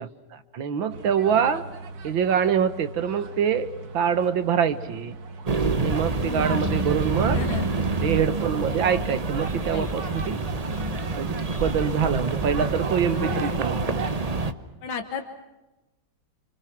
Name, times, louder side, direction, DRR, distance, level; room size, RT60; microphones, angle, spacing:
voice 1, 0.0-1.6 2.0-3.7 3.9-5.2 5.8-7.4 8.0-10.4 11.1-14.0, right 7 dB, 85° right, 12 dB, 2.1 m, -25 dB
sound 1, 0.9-14.1, right 4 dB, 55° right, 1.9 m, -39 dB
sound 2, 5.5-14.5, right 3 dB, 30° right, 0.8 m, -27 dB
voice 2, 6.2-6.9 7.2-7.7 9.7-10.2 13.1-13.6 14.8-15.2, left 7 dB, 90° left, 6 dB, 2.3 m, -34 dB
29.0 x 26.5 x 6.1 m, 1.1 s
omnidirectional pair, 2.1 m